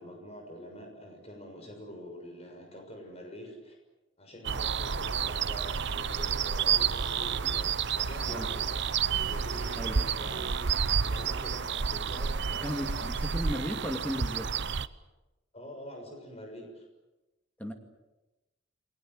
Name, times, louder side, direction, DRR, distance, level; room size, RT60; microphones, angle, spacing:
voice 1, 0.0-3.8 4.2-8.8 9.2-13.1 15.5-16.8, equal, 30° left, 2 dB, 6.5 m, -45 dB
sound 1, 4.4-14.9, right 6 dB, 60° right, 0.8 m, -30 dB
voice 2, 12.6-14.5 17.6-17.7, equal, 5° left, 4 dB, 2.4 m, -35 dB
29.5 x 21.5 x 7.9 m, 1.0 s
head